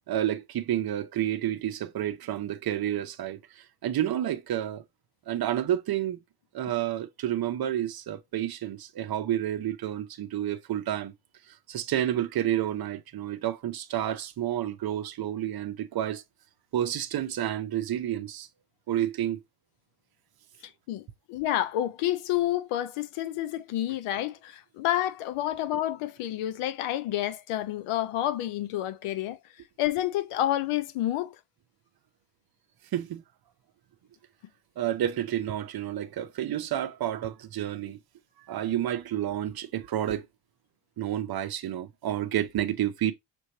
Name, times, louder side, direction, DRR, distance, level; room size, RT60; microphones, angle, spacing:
voice 1, 0.1-4.8 5.3-6.2 6.5-11.1 11.5-16.2 16.7-18.5 18.9-19.4 32.9-33.2 34.8-38.0 38.5-40.3 41.0-43.1, right 11 dB, 50° right, 0.6 m, -30 dB
voice 2, 20.6-29.4 29.8-31.4, left 13 dB, 90° left, 0.6 m, -29 dB
6.1 x 3.1 x 2.8 m
cardioid pair, 120°, 50 cm